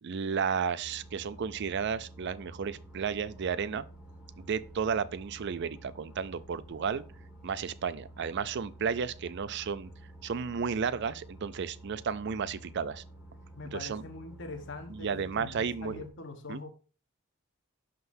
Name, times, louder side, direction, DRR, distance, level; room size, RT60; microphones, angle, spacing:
voice 1, 0.0-3.8 4.4-7.0 7.4-9.9 10.2-13.0 13.7-14.0 14.9-16.0 16.5-16.6, right 6 dB, 60° right, 0.4 m, -33 dB
sound 1, 0.8-16.1, right 1 dB, 5° right, 1.9 m, -50 dB
voice 2, 13.6-16.7, left 3 dB, 60° left, 1.2 m, -43 dB
11.0 x 3.8 x 2.6 m
head